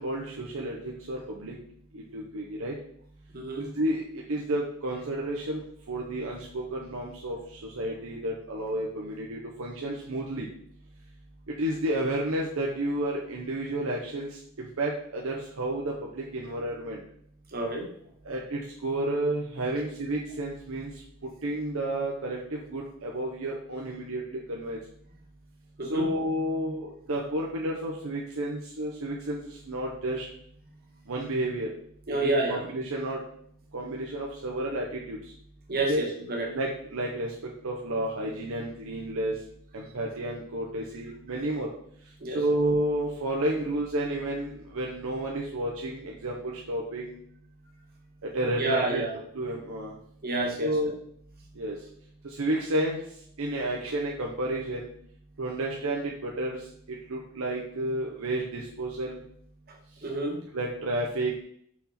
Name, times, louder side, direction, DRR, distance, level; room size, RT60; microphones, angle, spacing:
voice 1, 0.0-1.6 2.1-2.7 3.6-7.4 7.6-10.5 11.6-14.3 14.6-17.0 18.3-20.9 21.4-24.8 25.9-29.4 29.7-30.3 31.1-31.7 32.1-33.2 33.7-35.2 35.9-36.0 36.5-37.3 37.6-39.3 39.7-41.7 42.3-47.2 48.3-49.0 49.3-49.9 50.6-50.9 51.6-51.7 52.2-53.0 53.4-54.9 55.4-56.6 57.1-59.2 60.5-61.4, right 1 dB, 65° right, -2 dB, 0.8 m, -31 dB
voice 2, 3.3-3.7 17.5-17.9 25.8-26.1 32.1-32.7 35.7-36.6 42.2-42.4 48.5-49.2 50.2-50.9 59.7-60.4, right 2 dB, 45° right, 0 dB, 1.4 m, -29 dB
6.0 x 4.3 x 4.2 m, 0.66 s
head